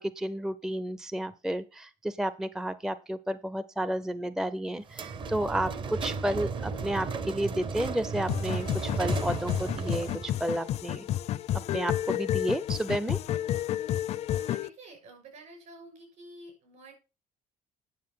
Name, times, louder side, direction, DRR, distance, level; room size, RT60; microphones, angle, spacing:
voice 1, 0.0-11.1 11.7-13.2, right 1 dB, 5° right, 15 dB, 0.5 m, -31 dB
sound 1, 4.9-10.3, right 4 dB, 40° right, 0.9 m, -34 dB
sound 2, 8.3-14.7, left 12 dB, 50° left, 0.5 m, -31 dB
voice 2, 14.3-16.9, right 2 dB, 60° right, 3 dB, 6.7 m, -50 dB
9.5 x 7.0 x 5.6 m, 0.31 s
cardioid pair, 140°, 13 cm